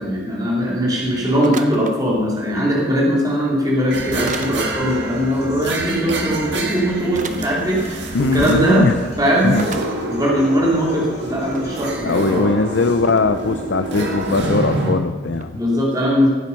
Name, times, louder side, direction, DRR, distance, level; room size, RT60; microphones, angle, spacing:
voice 1, 0.0-8.9 9.2-9.5 10.1-12.5 15.5-16.3, equal, 20° right, -4 dB, 2.6 m, -20 dB
sound 1, 1.4-2.0 3.3-3.4 4.3-4.6 6.3-6.4 7.1-7.5 8.4-8.5 8.8-8.9 9.6-9.9 10.6-10.7 11.1-11.7 12.3-12.4 13.0-13.3 15.3-15.5, right 4 dB, 40° right, 0.7 m, -33 dB
Human voice / Acoustic guitar, 3.9-11.9, left 1 dB, 35° left, 2.4 m, -39 dB
sound 2, 3.9-14.9, right 2 dB, 65° right, 1.8 m, -27 dB
voice 2, 8.1-8.9 9.4-9.6 12.0-15.6, left 3 dB, 70° left, 8 dB, 0.6 m, -20 dB
15.0 x 8.2 x 5.7 m, 1.4 s
head